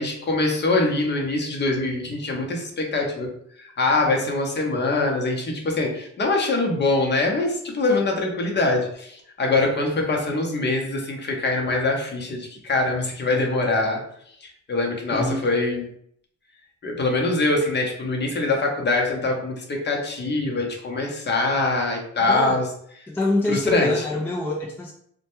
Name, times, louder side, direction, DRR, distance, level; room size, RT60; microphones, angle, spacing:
voice 1, 0.0-3.3 3.6-14.0 14.4-15.8 16.8-22.7 23.5-23.9, left 2 dB, 35° left, 0 dB, 0.7 m, -23 dB
voice 2, 15.1-15.4 22.2-22.6 23.1-24.9, left 1 dB, 5° left, -1 dB, 0.3 m, -25 dB
2.1 x 2.1 x 2.9 m, 0.67 s
cardioid pair, 90°, 30 cm